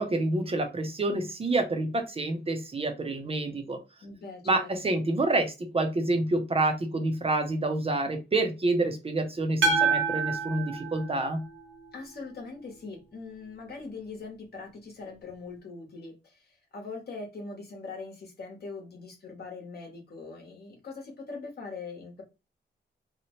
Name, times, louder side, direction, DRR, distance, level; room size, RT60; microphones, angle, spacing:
voice 1, 0.0-3.8 4.5-11.4, right 2 dB, 30° right, 0.5 m, -28 dB
voice 2, 4.0-4.7 11.9-22.2, left 4 dB, 60° left, 0.9 m, -42 dB
sound 1, 9.6-11.9, right 4 dB, 80° right, 0.8 m, -27 dB
2.8 x 2.0 x 2.9 m
wide cardioid pair, 135°, 19 cm